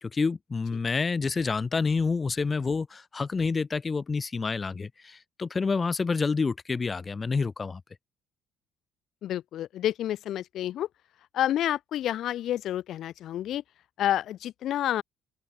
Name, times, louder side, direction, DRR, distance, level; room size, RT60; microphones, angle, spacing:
voice 1, 0.0-7.8, left 4 dB, 25° left, 1.9 m, -28 dB
voice 2, 9.2-10.9 11.3-13.6 14.0-15.0, left 12 dB, 60° left, 1.7 m, -29 dB
open air
cardioid pair, 125°, 0 cm